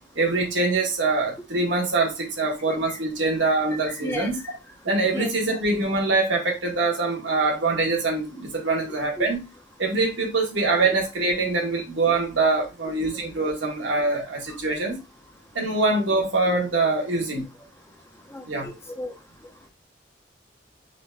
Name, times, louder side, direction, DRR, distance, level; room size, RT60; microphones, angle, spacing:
voice 1, 0.1-4.4 4.8-9.5 9.8-15.0 15.5-17.4 18.5-18.7, right 3 dB, 75° right, 1.4 m, -24 dB
voice 2, 4.0-4.3 5.1-5.3 9.2-9.3 18.3-19.1, equal, 15° left, 0.7 m, -33 dB
4.0 x 3.4 x 3.4 m
head